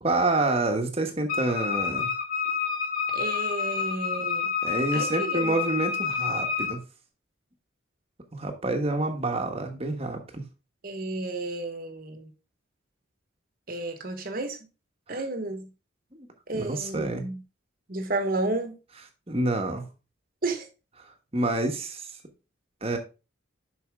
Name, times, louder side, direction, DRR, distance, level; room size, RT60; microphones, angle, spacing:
voice 1, 0.0-2.1 4.6-6.8 8.3-10.4 16.1-16.3 16.5-17.3 19.3-19.9 21.3-22.1 22.8-23.0, right 2 dB, 30° right, 1.3 m, -28 dB
Wind instrument woodwind instrument, 1.3-6.8, left 6 dB, 45° left, 1.8 m, -29 dB
voice 2, 3.1-4.5 4.9-5.6 10.8-12.3 13.7-14.6 15.1-15.7 16.5-17.4 17.9-18.8 20.4-20.7, right 2 dB, 45° right, 1.2 m, -32 dB
7.1 x 5.9 x 3.6 m
head